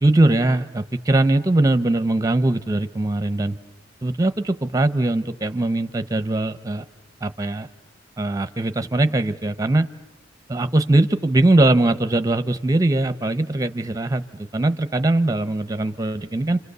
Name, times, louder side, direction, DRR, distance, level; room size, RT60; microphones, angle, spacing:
voice 1, 0.0-3.6 4.0-6.8 7.2-7.7 8.2-9.9 10.5-16.6, right 2 dB, 20° right, 11 dB, 0.9 m, -21 dB
30.0 x 26.5 x 6.9 m, 1.0 s
head